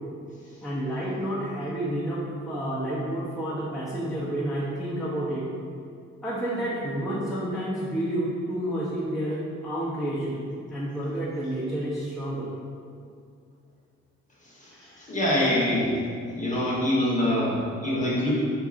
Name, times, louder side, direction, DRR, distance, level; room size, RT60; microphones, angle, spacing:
voice 1, 0.6-5.4 6.2-10.4 10.7-12.5 14.7-15.1, right 1 dB, ahead, -9 dB, 0.6 m, -30 dB
voice 2, 15.1-15.9 16.4-18.3, left 1 dB, 25° left, -7 dB, 0.9 m, -24 dB
2.6 x 2.3 x 2.4 m, 2.3 s
supercardioid pair, 50°, 31 cm